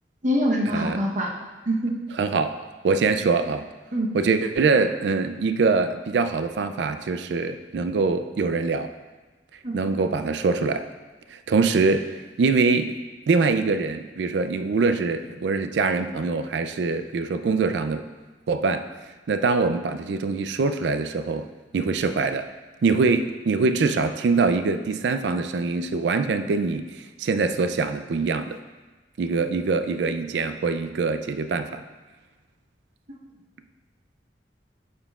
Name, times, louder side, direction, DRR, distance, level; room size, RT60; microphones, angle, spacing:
voice 1, 0.2-1.3 1.7-2.0 3.9-4.1 9.6-9.8 33.1-33.2, equal, 45° right, 0 dB, 0.9 m, -24 dB
voice 2, 2.2-2.5 2.8-3.6 4.1-8.9 9.7-10.8 11.3-12.1 12.4-12.9 13.3-18.1 18.5-18.8 19.3-21.5 21.7-22.5 22.8-28.6 29.2-31.8, right 4 dB, 75° right, 9 dB, 0.4 m, -23 dB
8.8 x 6.7 x 2.4 m, 1.2 s
head